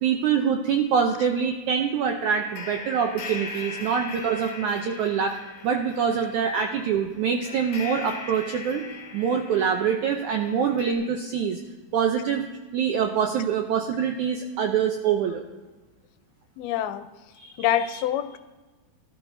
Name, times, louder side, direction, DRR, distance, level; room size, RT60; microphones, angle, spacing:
voice 1, 0.0-5.3 5.6-8.9 9.1-11.6 11.9-12.5 12.7-15.4 17.4-17.5, right 7 dB, 80° right, 4 dB, 1.7 m, -25 dB
sound 1, 2.2-10.9, left 4 dB, 45° left, 2.4 m, -40 dB
voice 2, 16.6-17.1 17.6-18.4, left 11 dB, 90° left, 11 dB, 2.6 m, -26 dB
18.0 x 12.0 x 2.7 m, 1.2 s
omnidirectional pair, 4.3 m